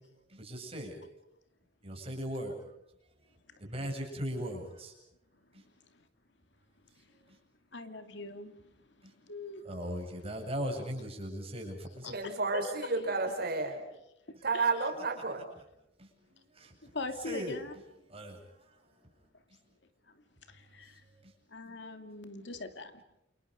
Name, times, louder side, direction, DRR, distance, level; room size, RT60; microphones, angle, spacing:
voice 1, 0.3-1.0 1.8-2.5 3.6-4.9 9.6-12.1 16.5-16.7 17.2-17.5 18.1-18.4 21.2-21.3, equal, 30° right, 1 dB, 7.9 m, -38 dB
voice 2, 5.6-6.1 6.9-7.4 7.7-9.7 12.0-13.0 14.5-14.9 16.8-17.7 20.1-21.0 21.5-23.0, left 3 dB, 65° left, 8 dB, 2.6 m, -43 dB
voice 3, 12.1-12.6 12.9-13.8 14.4-15.4, right 3 dB, 55° right, 5 dB, 5.0 m, -31 dB
29.0 x 28.5 x 5.3 m, 0.84 s
head